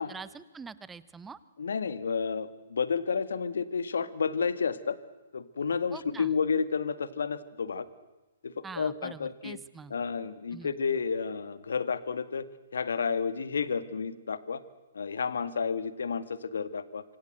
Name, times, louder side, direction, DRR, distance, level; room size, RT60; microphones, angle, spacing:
voice 1, 0.0-1.4 5.9-6.3 8.6-9.9 10.5-10.7, right 5 dB, 10° right, 17 dB, 1.1 m, -44 dB
voice 2, 1.6-5.0 5.3-7.9 8.4-9.6 9.9-12.5 12.7-14.6 14.9-17.0, left 5 dB, 70° left, 14 dB, 1.8 m, -31 dB
26.0 x 25.0 x 7.9 m, 1.1 s
figure-of-eight pair, 125°, 0 cm